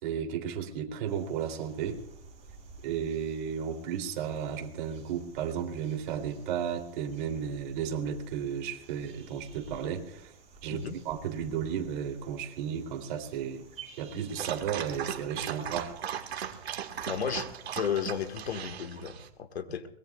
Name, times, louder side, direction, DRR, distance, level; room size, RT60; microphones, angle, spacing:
voice 1, 0.0-2.0 2.8-10.3 10.6-13.6 14.0-15.9, right 8 dB, 50° right, 4 dB, 3.2 m, -34 dB
sound 1, 1.1-18.7, right 5 dB, 20° right, 7.7 m, -54 dB
Dog, 14.3-19.3, right 9 dB, 80° right, 1.9 m, -38 dB
voice 2, 17.1-17.5 17.7-19.9, left 8 dB, 85° left, 7 dB, 1.8 m, -33 dB
22.5 x 21.0 x 2.4 m, 0.72 s
hypercardioid pair, 135°, 31 cm